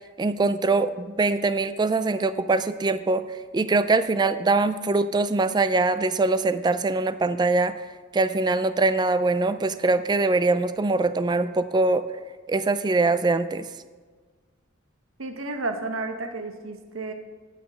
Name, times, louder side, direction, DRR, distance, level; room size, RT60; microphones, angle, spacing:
voice 1, 0.2-3.2 3.5-7.7 8.1-12.0 12.5-13.7, right 3 dB, 20° right, 12 dB, 0.3 m, -23 dB
voice 2, 15.2-17.1, right 3 dB, 85° right, 6 dB, 1.1 m, -32 dB
9.2 x 8.2 x 6.2 m, 1.4 s
head